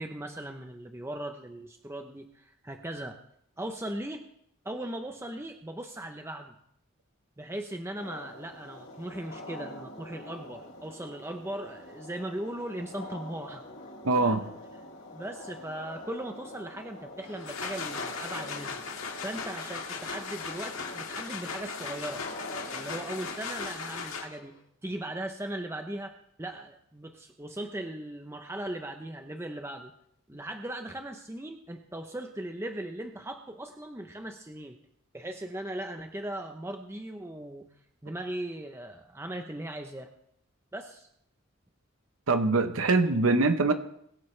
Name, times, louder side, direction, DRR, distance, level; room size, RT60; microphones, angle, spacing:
voice 1, 0.0-3.2 3.6-4.3 4.6-6.5 7.4-13.6 14.2-14.4 15.1-18.8 19.2-22.3 22.7-29.9 30.3-34.8 35.1-37.7 38.0-40.1 40.7-41.1, right 1 dB, 10° right, 5 dB, 0.7 m, -38 dB
sound 1, 7.9-23.4, left 1 dB, 60° left, 4.3 m, -46 dB
voice 2, 14.0-14.4 42.3-43.7, right 3 dB, 85° right, 8 dB, 0.9 m, -23 dB
sound 2, 17.2-24.6, left 5 dB, 85° left, 1.8 m, -38 dB
22.5 x 11.0 x 3.3 m, 0.73 s
head